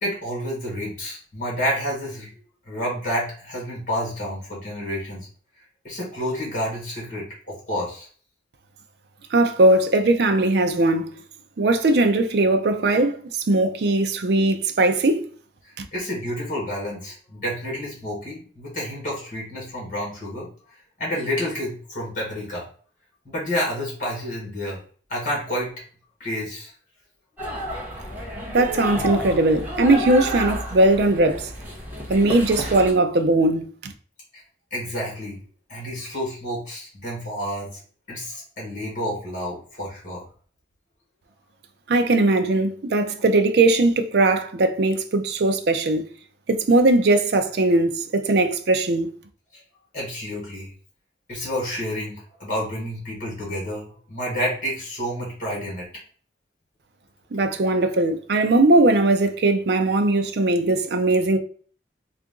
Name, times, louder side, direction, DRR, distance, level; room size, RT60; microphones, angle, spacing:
voice 1, 0.0-2.3 2.7-5.3 5.8-8.1 15.9-20.5 21.0-22.6 23.3-24.8 25.1-25.7 26.2-26.7 34.7-35.4 35.7-37.8 38.1-40.2 49.5-49.6 49.9-50.7 51.3-55.9, equal, 40° left, 1.8 m, -29 dB
voice 2, 9.3-11.2 11.6-15.3 15.8-15.9 28.5-31.5 32.1-33.9 41.9-46.0 46.5-49.1 57.3-61.4, right 2 dB, 55° right, 0.4 m, -19 dB
sound 1, 27.4-32.9, equal, 10° right, 0.8 m, -31 dB
3.7 x 2.5 x 3.5 m
head